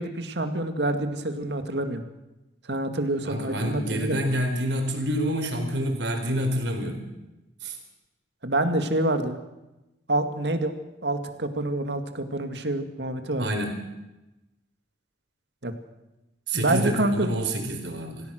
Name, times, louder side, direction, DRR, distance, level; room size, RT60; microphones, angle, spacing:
voice 1, 0.0-2.0 2.7-4.2 8.4-9.4 10.1-10.7 11.0-13.5 15.6-15.7 16.5-17.3, right 1 dB, 70° right, 7 dB, 2.1 m, -27 dB
voice 2, 3.2-7.0 7.6-7.8 13.4-13.8 16.5-18.3, equal, 85° right, 4 dB, 4.6 m, -28 dB
26.0 x 16.0 x 6.5 m, 1.0 s
head